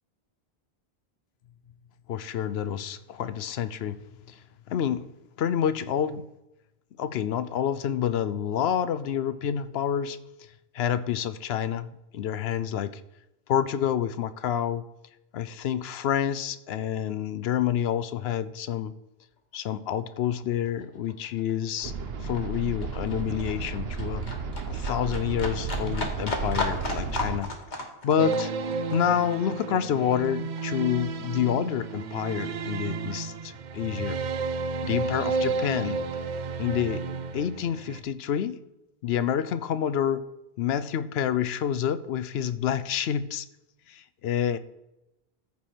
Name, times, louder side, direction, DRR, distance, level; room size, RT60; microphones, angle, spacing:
voice 1, 2.1-4.0 4.3-4.4 4.7-5.1 5.4-6.2 7.0-10.2 10.7-11.9 12.1-13.0 13.5-14.8 15.3-18.9 19.5-21.9 22.2-24.3 24.7-28.5 28.9-34.2 34.8-36.0 36.6-37.0 37.3-38.6 39.0-40.2 40.6-43.5 43.9-44.6, left 9 dB, 75° left, 14 dB, 0.8 m, -28 dB
Livestock farm animals working animals, 19.5-19.7 19.9-30.9 31.2-32.3 32.6-32.7, left 2 dB, 45° left, 1.4 m, -36 dB
sound 1, 21.8-27.4, right 5 dB, 70° right, 1.0 m, -33 dB
sound 2, 28.2-38.0, right 4 dB, 55° right, 0.6 m, -32 dB
14.0 x 4.7 x 4.4 m, 0.92 s
omnidirectional pair, 1.1 m